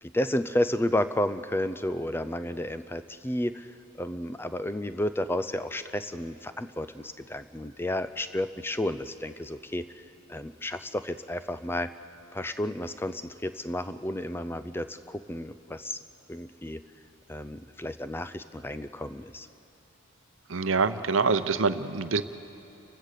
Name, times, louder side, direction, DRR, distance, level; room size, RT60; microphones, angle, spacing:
voice 1, 0.0-12.0 12.3-16.0 16.3-16.8 17.3-19.5, left 1 dB, 10° left, 12 dB, 0.4 m, -32 dB
voice 2, 20.5-22.2, right 4 dB, 65° right, 12 dB, 0.7 m, -25 dB
29.5 x 15.5 x 6.7 m, 2.9 s
head